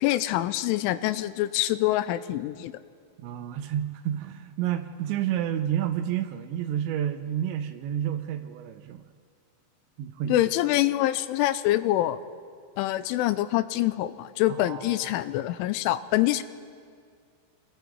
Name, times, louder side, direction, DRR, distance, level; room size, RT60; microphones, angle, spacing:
voice 1, 0.0-2.7 10.3-12.2 12.8-16.4, left 15 dB, 85° left, 13 dB, 3.1 m, -25 dB
voice 2, 3.2-9.0 10.0-10.5 14.5-15.3, right 10 dB, 75° right, 8 dB, 2.9 m, -30 dB
28.5 x 21.5 x 4.7 m, 2.1 s
omnidirectional pair, 5.5 m